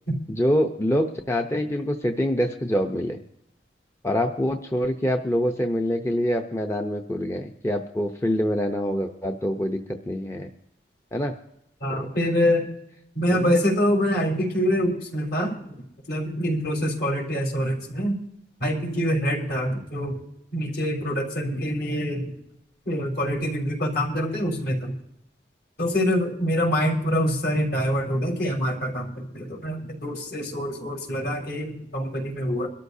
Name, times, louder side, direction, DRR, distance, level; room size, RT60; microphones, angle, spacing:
voice 1, 0.3-3.2 4.0-10.5 11.1-11.4 11.9-12.1 13.3-13.6, equal, 15° left, 4 dB, 0.7 m, -25 dB
voice 2, 11.8-12.7 13.1-15.7 16.1-18.2 18.6-20.2 20.5-22.3 22.9-24.9 25.8-32.7, equal, 60° left, 0 dB, 4.2 m, -25 dB
23.0 x 13.0 x 2.7 m, 0.78 s
head